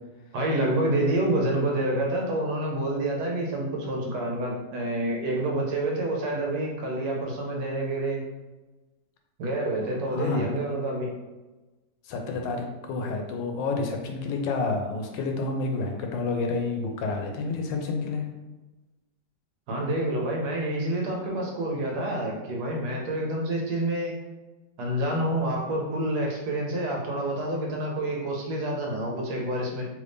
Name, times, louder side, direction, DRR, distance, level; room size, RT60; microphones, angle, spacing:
voice 1, 0.3-8.2 9.4-11.1 19.7-24.1 24.8-29.9, right 1 dB, 70° right, -1 dB, 1.2 m, -28 dB
voice 2, 10.1-10.5 12.0-18.3, left 3 dB, 90° left, 3 dB, 1.3 m, -29 dB
3.2 x 2.6 x 3.4 m, 1.1 s
omnidirectional pair, 1.9 m